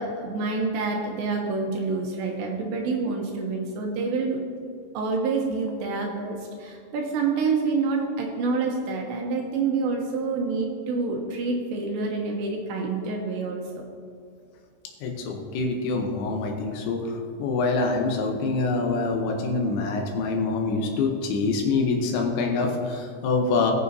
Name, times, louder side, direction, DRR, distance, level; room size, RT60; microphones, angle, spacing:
voice 1, 0.0-4.4 4.9-13.8, right 4 dB, 80° right, 1 dB, 2.8 m, -27 dB
voice 2, 15.0-23.7, left 3 dB, 75° left, 2 dB, 3.0 m, -25 dB
19.0 x 6.8 x 2.7 m, 2.4 s
omnidirectional pair, 5.6 m